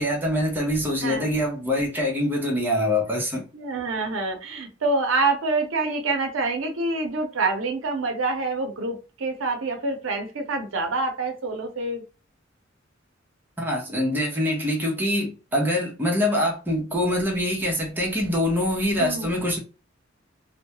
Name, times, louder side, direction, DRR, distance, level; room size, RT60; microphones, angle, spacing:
voice 1, 0.0-3.4 13.6-19.6, left 1 dB, 10° right, 0.7 m, -24 dB
voice 2, 3.5-12.0 19.0-19.3, right 3 dB, 90° right, 0.6 m, -26 dB
2.2 x 2.1 x 2.8 m
head